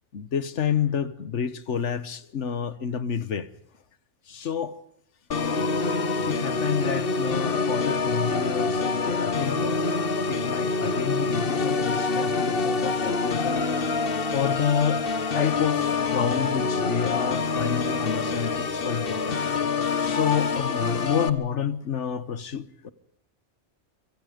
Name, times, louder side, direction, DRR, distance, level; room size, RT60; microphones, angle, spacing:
voice 1, 0.1-3.5 4.3-4.8 6.3-9.8 10.3-13.7 14.3-15.1 15.3-19.4 20.0-22.9, left 8 dB, 80° left, 1.4 m, -29 dB
Organ, 5.3-21.3, left 4 dB, 55° left, 1.3 m, -26 dB
26.0 x 24.5 x 5.2 m
omnidirectional pair, 1.2 m